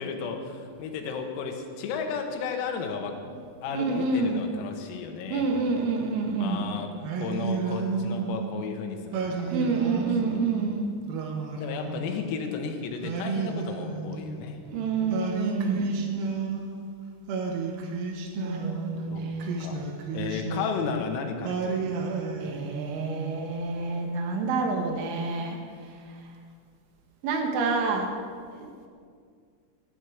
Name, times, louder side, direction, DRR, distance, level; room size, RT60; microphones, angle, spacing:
voice 1, 0.0-3.2 3.6-5.5 6.4-10.0 10.3-10.5 11.6-14.6 15.0-15.3 19.1-19.3 19.6-19.9 20.1-22.0, left 5 dB, 85° left, 4 dB, 4.0 m, -34 dB
voice 2, 3.7-4.4 5.3-6.7 9.5-11.0 14.6-15.9 18.3-19.6 22.4-25.6 27.2-28.1 28.5-28.7, right 4 dB, 70° right, 3 dB, 3.6 m, -28 dB
Singing, 7.0-8.5 9.1-10.5 11.1-12.4 13.0-14.5 15.1-16.9 17.3-18.9 19.4-21.1 21.4-23.1, right 4 dB, 90° right, 4.1 m, -32 dB
17.5 x 11.0 x 5.0 m, 2.1 s
omnidirectional pair, 6.0 m